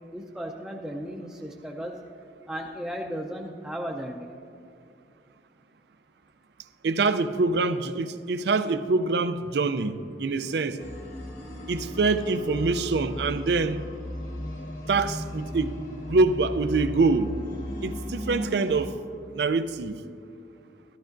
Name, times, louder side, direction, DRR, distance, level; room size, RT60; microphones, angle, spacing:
voice 1, 0.1-2.0 2.5-4.4, equal, 5° right, -2 dB, 0.5 m, -35 dB
voice 2, 6.8-10.8 11.7-13.8 14.9-15.8 16.1-17.3 17.8-19.0 19.3-20.0, right 3 dB, 65° right, 12 dB, 0.5 m, -25 dB
sound 1, 10.8-18.9, left 1 dB, 45° left, 1.3 m, -36 dB
14.0 x 13.5 x 2.6 m, 2.5 s
head